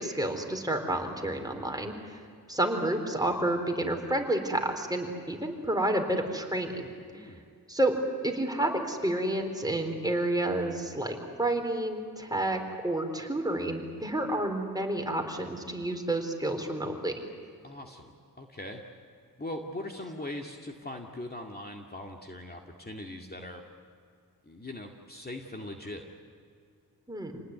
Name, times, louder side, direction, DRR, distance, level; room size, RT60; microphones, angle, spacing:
voice 1, 0.0-2.2 2.5-6.9 7.7-7.9 8.2-17.1 27.1-27.4, right 1 dB, 10° right, 3 dB, 4.0 m, -30 dB
voice 2, 7.1-7.4 17.6-18.1 18.4-18.8 19.4-23.6 24.5-26.1, left 1 dB, 25° left, 2 dB, 2.2 m, -40 dB
28.0 x 19.5 x 9.5 m, 2.3 s
cardioid pair, 75°, 38 cm